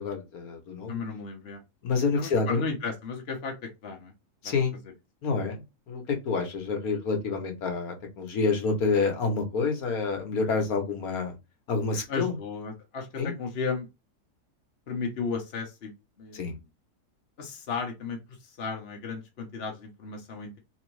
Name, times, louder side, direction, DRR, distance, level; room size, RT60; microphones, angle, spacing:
voice 1, 0.0-1.0 1.8-2.6 4.4-4.8 5.2-11.4 11.7-12.3 13.2-13.3 16.3-16.6, left 4 dB, 65° left, 4 dB, 1.4 m, -28 dB
voice 2, 0.9-1.6 2.1-3.5 3.8-4.1 4.4-4.5 12.1-13.9 14.9-15.9 16.2-16.6 17.4-20.6, left 4 dB, 45° left, 1 dB, 0.9 m, -34 dB
3.5 x 3.4 x 3.1 m, 0.25 s
omnidirectional pair, 1.7 m